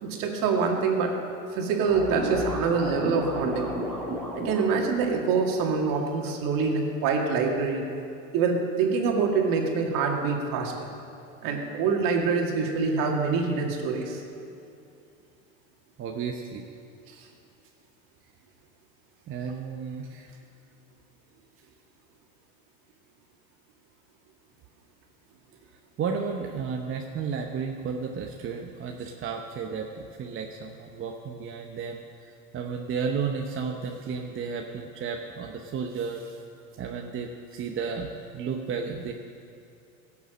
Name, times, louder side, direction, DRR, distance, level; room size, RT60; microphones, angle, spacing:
voice 1, 0.0-1.1 1.5-3.7 4.4-7.8 8.3-10.9 11.4-14.2, right 5 dB, 55° right, 1 dB, 2.2 m, -25 dB
sound 1, 1.9-5.0, equal, ahead, 3.6 m, -32 dB
voice 2, 16.0-16.6 19.3-20.3 26.0-32.0 32.5-36.4 36.8-39.1, right 5 dB, 30° right, 2 dB, 0.9 m, -33 dB
16.5 x 7.2 x 6.5 m, 2.7 s
hypercardioid pair, 100°, 41 cm